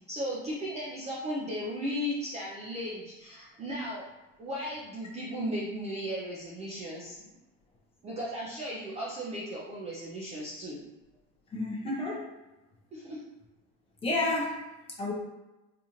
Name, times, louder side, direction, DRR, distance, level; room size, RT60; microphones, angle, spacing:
voice 1, 0.1-4.0 4.4-7.3 8.0-10.8 12.9-13.2, equal, 20° right, -5 dB, 0.3 m, -36 dB
voice 2, 11.5-12.2 14.0-14.6 15.0-15.1, left 2 dB, 15° left, -3 dB, 0.6 m, -30 dB
4.1 x 2.5 x 2.9 m, 1.1 s
cardioid pair, 165°, 33 cm